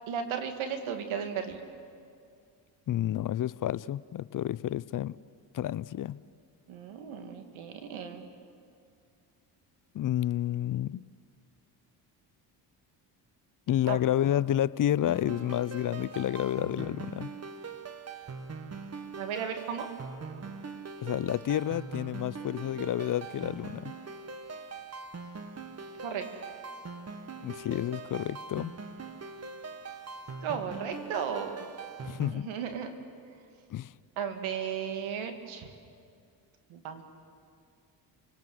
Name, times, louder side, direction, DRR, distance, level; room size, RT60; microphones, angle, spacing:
voice 1, 0.1-1.6 6.7-8.3 13.9-14.0 19.2-19.9 26.0-26.3 30.4-31.6 32.3-32.9 34.2-35.7 36.7-37.0, right 7 dB, 70° right, 6 dB, 2.5 m, -35 dB
voice 2, 2.9-5.2 5.5-6.2 9.9-11.0 13.7-17.3 21.0-23.9 27.4-28.7 32.1-32.5 33.7-33.9, left 12 dB, 40° left, 20 dB, 0.6 m, -30 dB
sound 1, 15.0-32.3, right 4 dB, 30° right, 1.7 m, -42 dB
30.0 x 18.5 x 7.9 m, 2.3 s
supercardioid pair, 65°, 49 cm